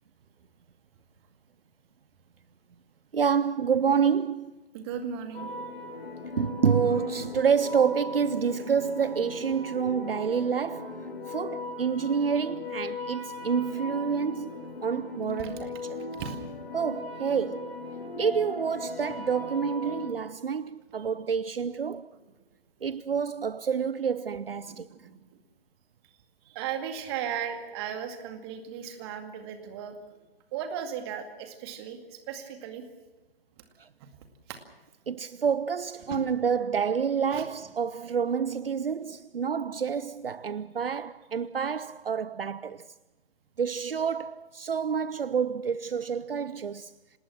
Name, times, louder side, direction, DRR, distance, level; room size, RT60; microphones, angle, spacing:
voice 1, 3.1-4.5 6.4-14.5 14.8-16.0 16.7-17.8 18.2-22.1 22.8-24.9 33.8-33.9 35.1-42.8 43.6-46.9, right 6 dB, 70° right, 0.6 m, -28 dB
voice 2, 4.7-5.5 15.4-15.5 16.1-16.4 24.7-25.2 26.0-26.1 26.5-30.0 30.5-32.8 34.5-34.6 36.1-36.2 37.3-37.5, right 8 dB, 25° right, 2.2 m, -36 dB
sound 1, 5.3-20.1, left 2 dB, 75° left, 4.4 m, -38 dB
27.5 x 19.5 x 6.0 m
figure-of-eight pair, 130°, 30 cm